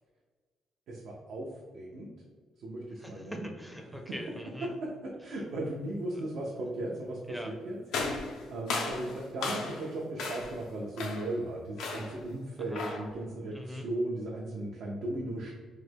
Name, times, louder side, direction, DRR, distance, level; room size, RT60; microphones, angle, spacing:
voice 1, 0.9-2.1 2.6-3.5 4.2-4.3 4.6-15.5, right 1 dB, 75° right, -3 dB, 0.5 m, -37 dB
voice 2, 3.0-4.7 7.3-7.5 12.7-13.0 13.5-13.8, equal, ahead, 3 dB, 0.4 m, -42 dB
sound 1, 7.9-9.9 10.2-10.6 11.0-11.4 11.8-12.2 12.7-13.1, left 3 dB, 85° left, 0.4 m, -35 dB
3.2 x 2.1 x 3.3 m, 1.5 s
cardioid pair, 90°, 0 cm